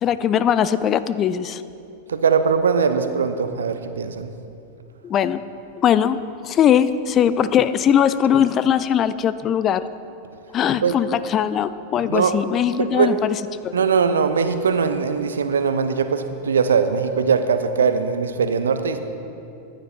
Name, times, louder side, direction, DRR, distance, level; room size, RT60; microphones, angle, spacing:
voice 1, 0.0-1.6 5.0-5.4 5.8-9.8 10.5-13.7, left 9 dB, 30° left, 15 dB, 0.4 m, -20 dB
voice 2, 2.1-4.3 10.8-10.9 12.1-12.3 12.8-13.1 13.7-19.0, right 6 dB, 70° right, 9 dB, 0.7 m, -20 dB
14.5 x 10.0 x 4.4 m, 2.7 s
figure-of-eight pair, 90°, 0 cm